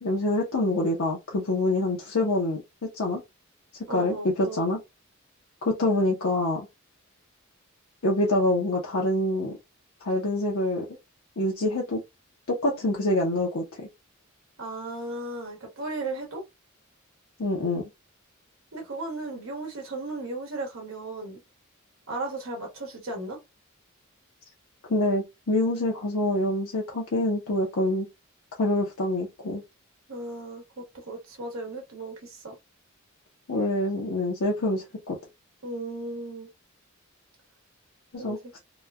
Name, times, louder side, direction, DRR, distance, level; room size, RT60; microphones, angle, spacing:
voice 1, 0.0-3.2 3.9-4.8 5.6-6.7 8.0-9.6 10.0-10.8 11.4-12.0 12.5-13.9 17.4-17.9 24.9-28.1 28.6-29.6 33.5-35.2 38.1-38.6, left 1 dB, 85° left, 0.7 m, -26 dB
voice 2, 3.9-4.6 14.6-16.4 18.7-21.4 22.1-23.4 30.1-32.6 35.6-36.5 38.2-38.4, right 2 dB, 70° right, 1.1 m, -35 dB
3.0 x 2.2 x 2.3 m
head